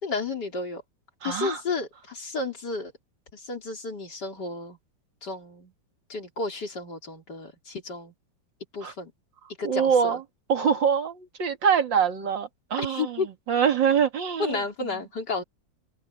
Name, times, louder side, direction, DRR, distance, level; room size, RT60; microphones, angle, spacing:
voice 1, 0.0-0.8 1.2-2.9 3.3-4.8 5.2-5.7 6.1-8.1 8.7-9.1 9.6-10.2 12.8-13.3 14.4-15.4, left 4 dB, 60° left, 4.1 m, -32 dB
voice 2, 1.2-1.6 8.8-8.9 9.6-10.2 10.5-14.6, right 7 dB, 75° right, 2.6 m, -24 dB
omnidirectional pair, 2.0 m